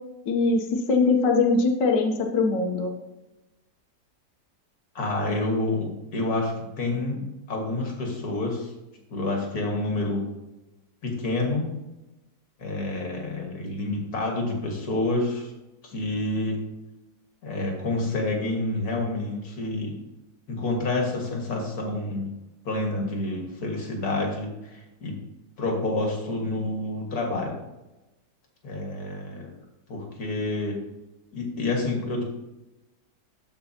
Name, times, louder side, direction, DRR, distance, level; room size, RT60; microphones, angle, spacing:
voice 1, 0.3-2.9, left 3 dB, 80° left, 3 dB, 1.5 m, -22 dB
voice 2, 5.0-7.2 7.5-8.7 9.1-10.2 11.0-11.7 12.6-15.5 15.8-16.6 17.4-19.9 20.5-22.3 22.7-25.1 25.6-27.5 28.6-29.5 29.9-30.8 31.3-32.2, left 2 dB, 60° left, 0 dB, 2.2 m, -28 dB
12.5 x 5.4 x 2.8 m, 0.99 s
omnidirectional pair, 1.9 m